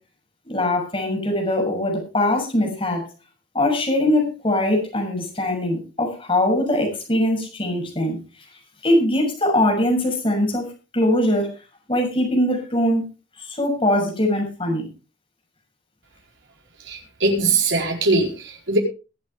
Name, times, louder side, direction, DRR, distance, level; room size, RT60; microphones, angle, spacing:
voice 1, 0.4-3.0 3.5-8.2 8.8-10.7 10.9-11.5 11.9-13.0 13.4-14.9, left 1 dB, 30° left, 1 dB, 6.7 m, -21 dB
voice 2, 16.9-18.8, right 3 dB, 75° right, 0 dB, 4.5 m, -21 dB
22.0 x 8.8 x 3.5 m, 0.33 s
head